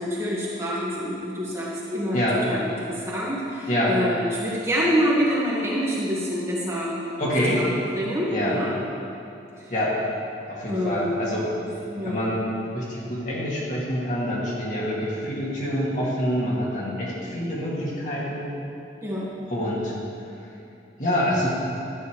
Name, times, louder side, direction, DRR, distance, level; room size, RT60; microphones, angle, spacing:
voice 1, 0.0-2.2 2.5-7.0 7.9-8.7 9.6-9.7 10.7-11.3 11.9-12.3 19.0-19.3, equal, 15° right, -7 dB, 1.8 m, -26 dB
voice 2, 7.2-7.6 8.3-8.6 9.7-10.0 10.5-11.4 12.0-18.5 19.5-19.9 21.0-21.5, equal, 45° left, -6 dB, 2.5 m, -26 dB
12.5 x 8.9 x 4.8 m, 2.7 s
head